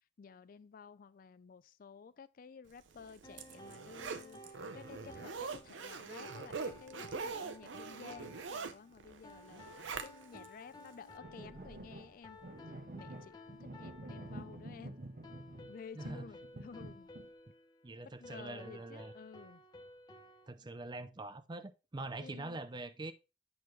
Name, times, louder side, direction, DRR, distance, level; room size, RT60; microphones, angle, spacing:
voice 1, 0.2-12.4 12.9-15.0 15.7-17.1 18.0-19.6 22.2-22.6, left 5 dB, 50° left, 0.4 m, -53 dB
Zipper (clothing), 2.9-10.5 10.9-11.0, right 5 dB, 85° right, 0.8 m, -44 dB
sound 1, 3.2-20.5, left 1 dB, 20° left, 0.9 m, -56 dB
sound 2, 11.2-15.7 16.1-17.3, right 1 dB, 50° right, 0.9 m, -48 dB
voice 2, 15.9-16.3 17.8-19.1 20.5-23.1, right 2 dB, 25° right, 0.5 m, -44 dB
8.6 x 6.1 x 3.1 m
head